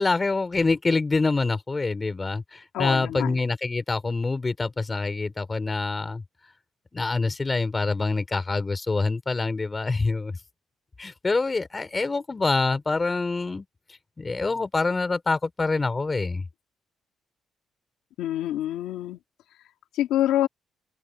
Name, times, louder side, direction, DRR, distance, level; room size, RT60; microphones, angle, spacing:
voice 1, 0.0-6.2 6.9-10.4 11.0-13.7 14.2-16.4, left 3 dB, 25° left, 3.4 m, -26 dB
voice 2, 2.7-3.4 18.2-19.2 19.9-20.5, left 13 dB, 90° left, 2.1 m, -26 dB
open air
cardioid pair, 90°, 0 cm